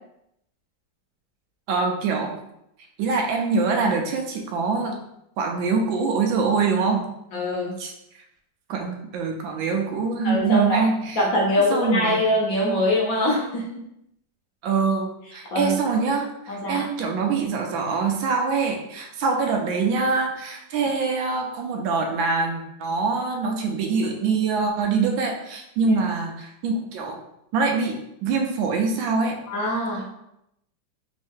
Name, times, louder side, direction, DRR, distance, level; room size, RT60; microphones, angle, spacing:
voice 1, 1.7-2.4 3.0-5.0 5.4-7.0 7.8-7.9 8.7-11.2 11.7-12.2 14.6-27.2 27.5-29.4, right 4 dB, 85° right, 2 dB, 1.3 m, -24 dB
voice 2, 7.3-7.7 10.2-10.8 11.2-13.7 15.5-15.8 16.5-16.8 25.8-26.0 29.5-30.1, left 1 dB, 60° left, -3 dB, 1.1 m, -23 dB
3.6 x 2.6 x 3.5 m, 0.81 s
omnidirectional pair, 2.0 m